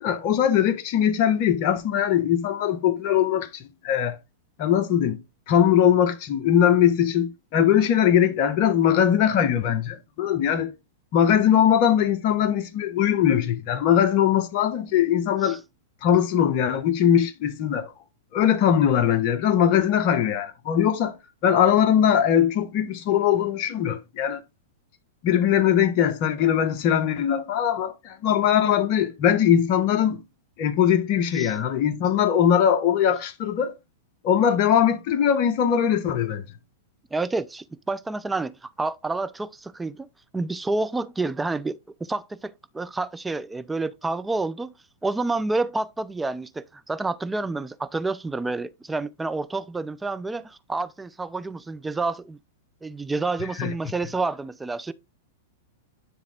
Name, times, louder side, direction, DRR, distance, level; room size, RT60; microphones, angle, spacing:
voice 1, 0.0-4.2 4.6-5.2 5.5-10.7 11.1-15.6 16.0-17.9 18.3-21.1 21.4-24.4 25.2-30.2 30.6-33.7 34.2-36.4 53.6-53.7, left 9 dB, 45° left, 1.1 m, -21 dB
voice 2, 37.1-40.1 40.3-44.7 45.0-52.4 52.8-54.9, right 3 dB, 10° right, 0.6 m, -29 dB
9.8 x 3.6 x 3.5 m
hypercardioid pair, 110°, 0 cm